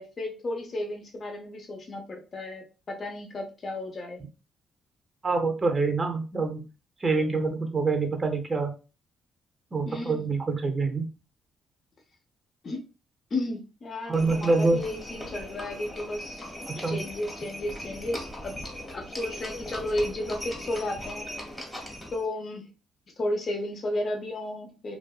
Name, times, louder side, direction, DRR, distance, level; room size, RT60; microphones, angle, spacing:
voice 1, 0.0-4.2 9.9-10.3 12.6-12.8 13.3-16.5 16.9-18.6 18.9-21.3 22.1-22.7 23.2-25.0, left 1 dB, 45° left, 2 dB, 0.7 m, -33 dB
voice 2, 5.2-6.6 7.0-8.7 9.7-11.1 14.1-14.8 16.7-17.0, right 3 dB, 30° right, 4 dB, 0.5 m, -26 dB
Livestock farm animals working animals, 14.1-22.2, left 1 dB, 10° left, 1.1 m, -39 dB
2.5 x 2.2 x 2.3 m, 0.31 s
cardioid pair, 90°, 0 cm